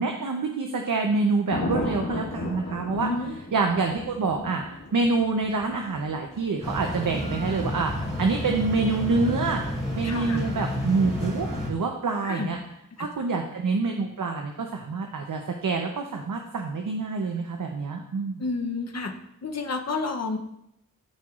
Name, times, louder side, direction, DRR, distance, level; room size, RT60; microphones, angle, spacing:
voice 1, 0.0-3.1 3.5-4.6 4.9-7.9 8.2-9.6 10.0-12.6 13.0-18.4, right 4 dB, 70° right, 3 dB, 0.7 m, -26 dB
Thunder, 1.5-9.6 12.3-12.6, left 2 dB, 85° left, 1.5 m, -36 dB
voice 2, 3.0-3.3 10.0-10.5 12.2-12.5 18.4-19.1 19.4-20.4, left 3 dB, 50° left, 4 dB, 0.8 m, -30 dB
sound 1, 6.6-11.7, left 1 dB, 15° left, 2.0 m, -30 dB
13.0 x 4.6 x 2.4 m, 0.81 s
wide cardioid pair, 75°, 34 cm